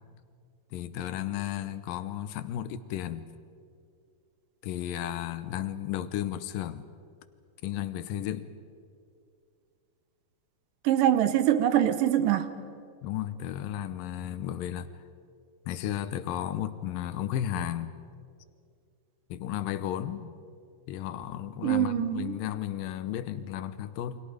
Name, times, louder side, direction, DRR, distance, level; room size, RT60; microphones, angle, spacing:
voice 1, 0.7-3.3 4.6-6.9 7.6-8.5 13.0-14.9 15.7-17.9 19.3-20.3 20.9-24.2, left 11 dB, 85° left, 2.6 m, -33 dB
voice 2, 10.8-12.5 21.6-22.4, right 11 dB, 80° right, 2.7 m, -24 dB
29.5 x 25.0 x 5.0 m
omnidirectional pair, 3.9 m